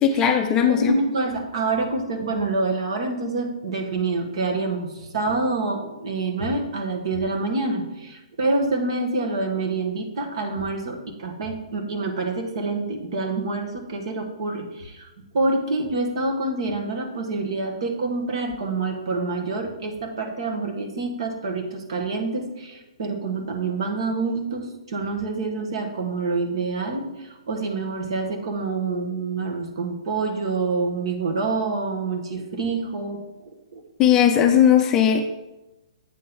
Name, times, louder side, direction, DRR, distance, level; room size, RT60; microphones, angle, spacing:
voice 1, 0.0-1.0 34.0-35.2, left 9 dB, 15° left, 4 dB, 0.5 m, -18 dB
voice 2, 0.7-15.1 15.3-33.2 33.7-33.8, right 3 dB, 55° right, 4 dB, 1.4 m, -27 dB
8.3 x 3.7 x 5.9 m, 1.0 s
hypercardioid pair, 160°, 3 cm